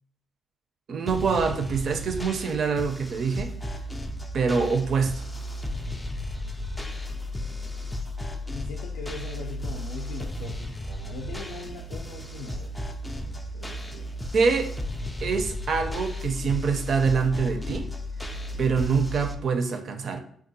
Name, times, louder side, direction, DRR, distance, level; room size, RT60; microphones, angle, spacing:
voice 1, 0.9-3.5 4.3-5.2 14.3-14.7 15.2-17.9 18.6-20.2, right 5 dB, 55° right, 6 dB, 0.5 m, -25 dB
sound 1, 1.1-19.4, left 1 dB, 10° left, 0.3 m, -34 dB
voice 2, 8.5-12.9 13.2-14.1, left 5 dB, 85° left, -1 dB, 0.4 m, -41 dB
3.6 x 2.3 x 2.6 m, 0.65 s
cardioid pair, 90°, 0 cm